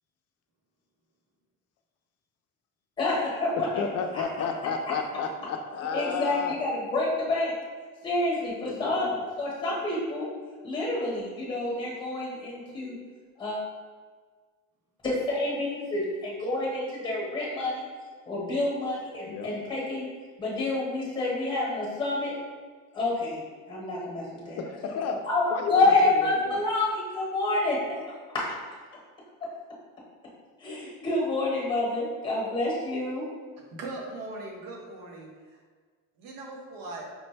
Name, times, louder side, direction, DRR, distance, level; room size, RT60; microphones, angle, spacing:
voice 1, 3.0-3.8 4.1-4.2 5.9-7.5 8.0-10.3 10.6-12.9 13.4-13.6 15.0-17.9 18.3-20.1 20.4-22.4 22.9-24.6 25.2-28.0 28.3-28.5 30.6-33.3, left 2 dB, 15° left, -4 dB, 1.0 m, -28 dB
voice 2, 3.5-6.5 8.6-9.1 19.2-19.5 24.6-25.9 26.1-26.6, left 5 dB, 50° left, 5 dB, 0.4 m, -32 dB
voice 3, 33.7-35.6 36.2-37.1, right 2 dB, 85° right, -1 dB, 1.0 m, -40 dB
4.9 x 2.1 x 3.2 m, 1.5 s
cardioid pair, 160°, 33 cm